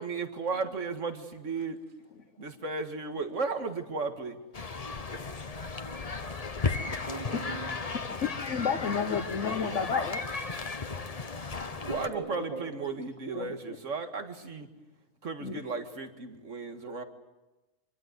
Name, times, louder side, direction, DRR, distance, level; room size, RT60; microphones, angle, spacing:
voice 1, 0.0-1.8 2.4-4.4 11.8-14.7 15.2-17.0, right 4 dB, 65° right, 6 dB, 2.2 m, -34 dB
sound 1, 4.5-12.1, left 4 dB, 30° left, 1.0 m, -35 dB
voice 2, 6.8-7.9 11.0-11.4 11.9-12.9 13.4-13.5, right 3 dB, 35° right, 0 dB, 3.4 m, -41 dB
voice 3, 8.2-10.2 13.3-13.8 15.4-15.6, left 6 dB, 60° left, 5 dB, 1.4 m, -31 dB
25.5 x 24.0 x 8.0 m, 1.1 s
omnidirectional pair, 1.4 m